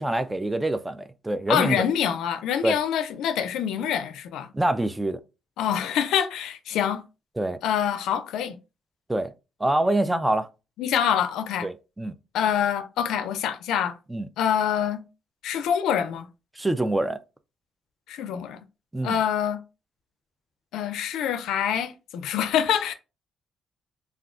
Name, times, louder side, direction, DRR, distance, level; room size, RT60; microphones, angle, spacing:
voice 1, 0.0-1.8 2.6-2.8 4.5-5.2 7.4-7.6 9.1-9.3 9.6-10.5 11.6-12.2 14.1-14.3 16.6-17.2 18.9-19.2, right 1 dB, 10° right, 0.3 m, -25 dB
voice 2, 1.5-4.5 5.6-7.0 7.6-8.6 10.8-11.7 12.3-14.0 14.4-15.0 15.4-16.3 18.1-18.6 19.0-19.6 20.7-22.9, left 9 dB, 85° left, 0.4 m, -25 dB
2.3 x 2.3 x 3.6 m
cardioid pair, 90°, 0 cm